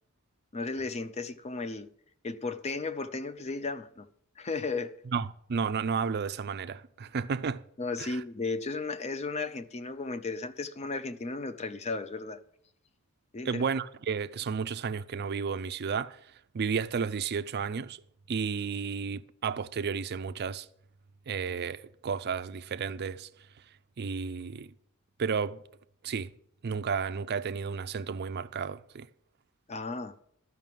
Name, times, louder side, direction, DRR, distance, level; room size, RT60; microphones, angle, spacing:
voice 1, 0.5-1.9 2.2-4.1 4.4-5.0 7.8-12.4 13.3-13.6 29.7-30.2, left 3 dB, 30° left, 0.5 m, -35 dB
voice 2, 5.1-7.6 8.0-8.2 13.4-16.2 16.5-18.0 18.3-20.7 21.3-23.3 24.0-24.7 25.2-25.6 26.0-26.3 26.6-29.1, right 6 dB, 50° right, 0.4 m, -32 dB
12.5 x 5.8 x 7.5 m
head